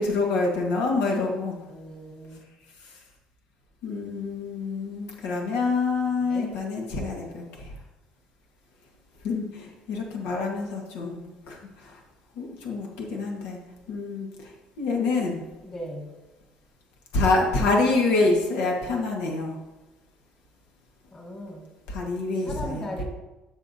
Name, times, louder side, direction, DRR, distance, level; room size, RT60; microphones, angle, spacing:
voice 1, 0.0-1.5 3.8-7.7 9.2-12.0 12.4-13.6 13.9-15.4 17.1-19.6 21.9-23.0, left 3 dB, 90° left, 0 dB, 1.6 m, -27 dB
voice 2, 1.7-2.5 6.1-6.5 15.6-16.1 21.1-21.8 22.3-23.0, left 1 dB, 25° left, 0 dB, 2.1 m, -38 dB
13.0 x 5.9 x 2.8 m, 1.1 s
cardioid pair, 110°, 3 cm